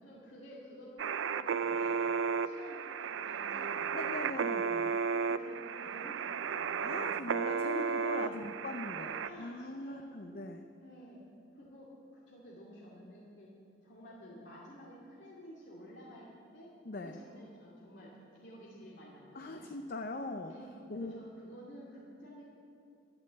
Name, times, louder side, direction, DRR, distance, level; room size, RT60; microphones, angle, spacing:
voice 1, 0.0-1.9 2.4-4.5 5.1-7.4 8.1-8.4 9.2-10.2 10.8-11.2 11.5-13.5 13.8-16.7 17.0-19.7 20.5-22.4, equal, 65° left, -6 dB, 2.3 m, -52 dB
sound 1, 1.0-9.3, right 6 dB, 90° right, 0.5 m, -34 dB
voice 2, 3.9-5.0 6.8-10.7 16.8-17.2 19.3-20.5 20.9-21.3, left 2 dB, 50° left, 5 dB, 0.6 m, -41 dB
12.5 x 12.0 x 7.4 m, 2.7 s
head